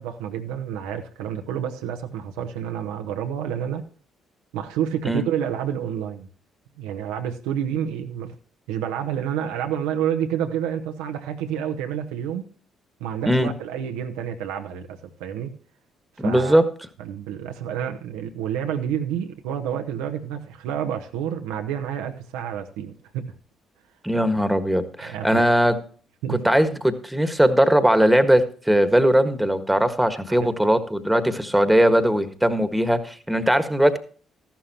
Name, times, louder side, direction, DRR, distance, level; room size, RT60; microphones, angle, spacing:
voice 1, 0.0-3.8 4.5-6.3 6.8-8.3 8.7-12.5 13.0-15.5 16.2-16.6 17.0-23.3 25.0-25.5 26.2-26.4 30.3-30.5, right 9 dB, 70° right, 0.9 m, -29 dB
voice 2, 16.2-16.6 24.0-25.8 26.3-34.0, equal, 5° right, 1.5 m, -19 dB
14.0 x 11.5 x 2.9 m
figure-of-eight pair, 45°, 0 cm